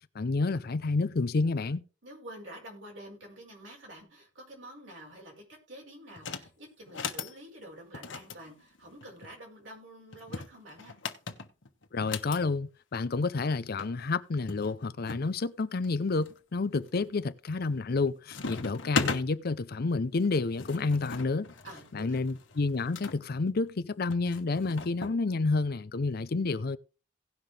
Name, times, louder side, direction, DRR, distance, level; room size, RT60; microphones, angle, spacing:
voice 1, 0.1-1.8 11.9-21.5 21.9-26.8, left 3 dB, 55° left, 0.6 m, -29 dB
voice 2, 2.0-11.0 21.6-22.2, right 1 dB, 75° right, 4.9 m, -48 dB
sound 1, 6.2-6.5 6.9-7.3 7.9-9.3 10.1-12.4 13.5-13.6 13.8-13.9 14.5-15.3 15.8-16.3 16.9-17.3 17.6-18.0 18.3-19.2 20.2-23.2 24.1-25.2, left 4 dB, 70° left, 1.3 m, -37 dB
17.5 x 5.9 x 3.4 m
head